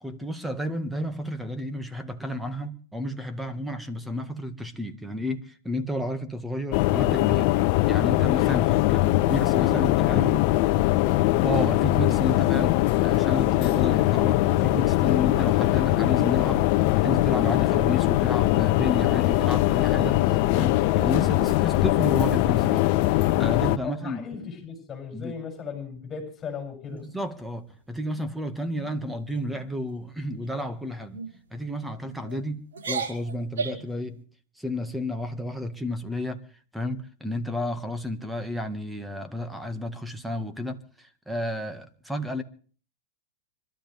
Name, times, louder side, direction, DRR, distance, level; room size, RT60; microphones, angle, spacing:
voice 1, 0.0-7.5 7.9-10.3 11.4-16.6 17.0-24.2 25.1-25.3 26.9-31.2 31.5-32.6 32.9-34.2 34.6-36.4 36.7-42.4, left 1 dB, 5° right, 1.8 m, -31 dB
sound 1, 6.7-23.8, left 17 dB, 50° left, 0.9 m, -21 dB
voice 2, 9.7-10.6 23.8-27.1, left 6 dB, 20° left, 7.6 m, -36 dB
sound 2, 27.0-27.6 28.0-28.3 28.7-28.9 29.3-29.7 30.3-30.6 31.1-31.3 32.0-32.4 32.7-33.9, right 5 dB, 80° right, 5.9 m, -35 dB
25.5 x 13.0 x 3.6 m
hypercardioid pair, 115°, 0 cm